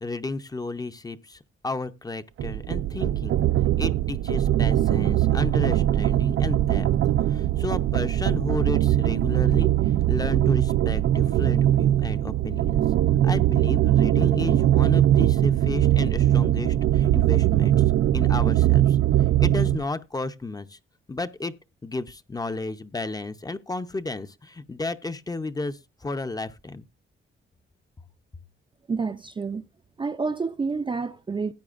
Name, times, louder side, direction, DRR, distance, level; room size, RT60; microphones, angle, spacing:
voice 1, 0.0-3.4 3.8-12.8 13.2-17.7 18.1-19.0 19.4-20.8 21.1-21.5 21.8-26.8, left 3 dB, 20° left, 0.6 m, -33 dB
sound 1, 2.4-19.8, right 12 dB, 80° right, 0.5 m, -21 dB
voice 2, 28.9-29.7 30.0-31.5, right 4 dB, 25° right, 0.5 m, -29 dB
16.0 x 9.4 x 2.5 m
wide cardioid pair, 145°, 21 cm